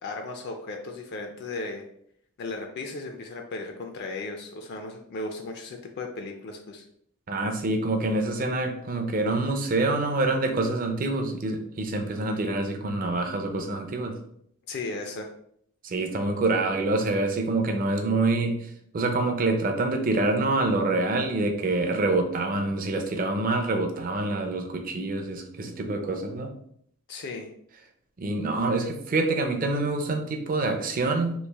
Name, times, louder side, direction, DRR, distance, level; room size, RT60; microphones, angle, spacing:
voice 1, 0.0-1.8 2.4-6.8 14.7-15.3 27.1-27.5, left 3 dB, 50° left, 4 dB, 0.4 m, -36 dB
voice 2, 7.3-14.2 15.8-26.5 28.2-31.3, right 2 dB, 40° right, 4 dB, 0.5 m, -26 dB
3.2 x 2.4 x 3.4 m, 0.69 s
head